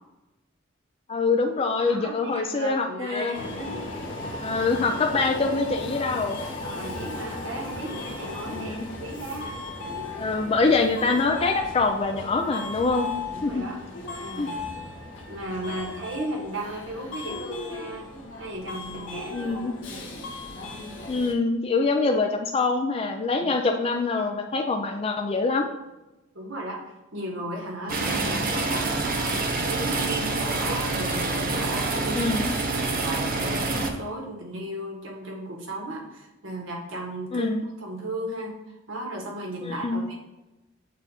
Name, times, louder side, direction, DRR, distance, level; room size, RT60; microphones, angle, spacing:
voice 1, 1.1-3.3 4.4-6.4 8.5-8.8 10.1-13.1 13.4-13.6 14.4-14.5 19.3-19.7 21.1-25.7 32.2-32.5 37.3-37.6 39.6-40.0, left 3 dB, 30° left, 3 dB, 0.4 m, -24 dB
voice 2, 1.8-3.8 6.6-9.5 13.3-13.8 14.2-14.8 15.2-18.1 18.4-20.0 23.4-23.5 26.3-26.8 27.1-32.3 32.9-37.5 37.8-40.1, right 1 dB, 70° right, -1 dB, 1.5 m, -35 dB
Subway metro underground, 3.3-21.3, left 2 dB, 70° left, 1.2 m, -36 dB
sound 1, 27.9-33.9, right 3 dB, 45° right, 0.7 m, -27 dB
7.4 x 2.5 x 5.7 m, 1.0 s
head